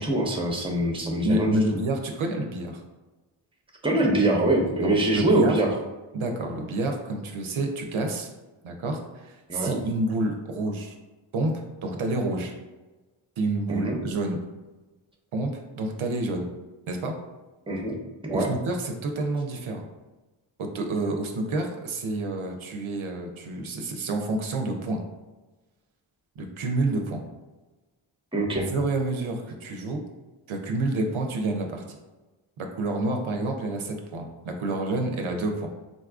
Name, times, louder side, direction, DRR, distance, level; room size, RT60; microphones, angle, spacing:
voice 1, 0.0-1.6 3.8-5.7 9.5-9.8 13.7-14.0 17.7-18.0 18.2-18.5 28.3-28.7, right 1 dB, 10° right, 1 dB, 0.6 m, -24 dB
voice 2, 1.2-2.8 4.7-5.5 6.1-8.3 8.6-10.9 11.3-12.5 13.4-14.4 15.3-16.5 16.9-17.2 18.3-19.8 20.6-25.0 26.4-27.2 28.7-30.0 30.5-31.8 32.6-35.7, right 2 dB, 70° right, 3 dB, 0.6 m, -28 dB
3.9 x 2.4 x 2.3 m, 1.2 s
cardioid pair, 45°, 50 cm